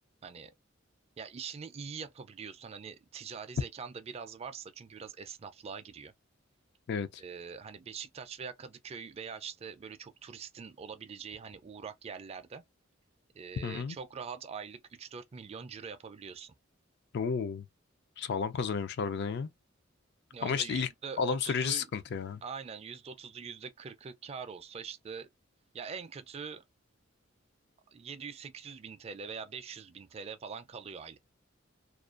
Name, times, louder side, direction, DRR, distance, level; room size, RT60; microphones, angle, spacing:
voice 1, 0.2-0.5 1.2-6.1 7.2-12.6 13.3-16.5 20.3-21.9 22.4-25.3 25.7-26.6 27.9-31.2, right 6 dB, 30° right, 0.3 m, -43 dB
voice 2, 6.9-7.2 13.6-14.0 17.1-17.7 18.2-19.5 20.4-20.9 21.2-22.4, left 6 dB, 55° left, 0.3 m, -32 dB
2.4 x 2.1 x 2.4 m
head